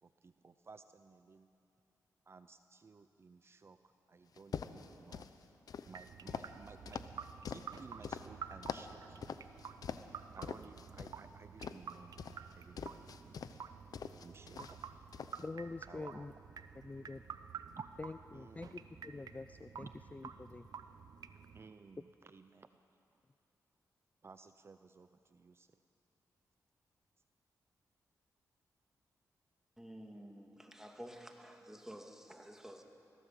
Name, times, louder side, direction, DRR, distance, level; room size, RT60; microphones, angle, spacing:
voice 1, 0.0-1.5 2.3-3.8 4.1-5.3 5.9-9.4 10.3-13.2 14.2-14.8 15.9-16.3 17.8-17.9 18.3-18.7 19.8-19.9 21.5-22.7 24.2-25.8, right 4 dB, 40° right, 10 dB, 0.6 m, -56 dB
sound 1, 4.4-5.3 5.7-8.3 8.6-8.9 9.2-10.1 10.4-11.2 11.6-13.6 13.9-14.9 15.1-15.4, left 7 dB, 70° left, 0.8 m, -44 dB
sound 2, 5.9-21.7, right 7 dB, 70° right, 0.8 m, -51 dB
voice 2, 15.4-16.3 16.7-17.3 18.0-20.7, left 3 dB, 20° left, 11 dB, 0.4 m, -46 dB
voice 3, 29.8-32.8, equal, 5° right, 3 dB, 2.1 m, -51 dB
21.5 x 16.0 x 7.6 m, 2.7 s
cardioid pair, 80°, 7 cm